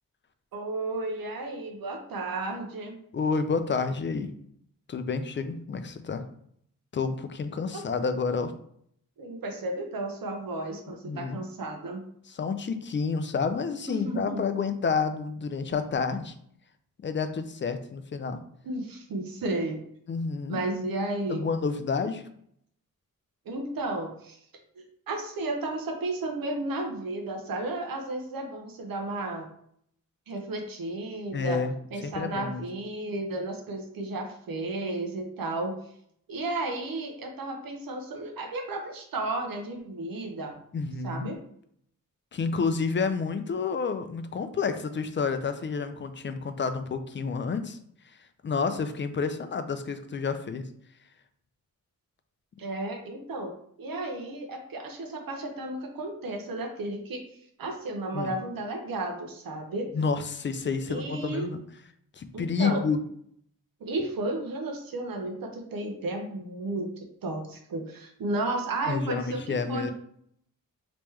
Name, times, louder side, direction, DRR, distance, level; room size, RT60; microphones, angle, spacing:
voice 1, 0.5-3.0 7.7-7.8 9.2-12.0 13.9-14.4 18.6-19.8 20.5-21.4 23.5-24.4 24.8-29.5 30.3-31.6 31.9-35.8 36.3-40.6 41.0-41.4 52.6-57.2 57.6-59.9 60.9-61.5 62.3-62.8 63.8-66.9 67.2-69.9, right 2 dB, 85° right, 4 dB, 0.8 m, -33 dB
voice 2, 3.1-4.3 4.9-6.2 6.9-8.5 11.0-11.4 12.3-16.3 17.0-18.4 20.1-20.6 21.3-22.2 31.3-31.7 32.1-32.6 40.7-41.3 42.3-47.8 48.4-50.6 58.1-58.3 59.9-61.6 62.2-63.0 68.9-69.9, left 5 dB, 35° left, 9 dB, 0.4 m, -29 dB
3.4 x 3.0 x 3.1 m, 0.66 s
wide cardioid pair, 105°, 34 cm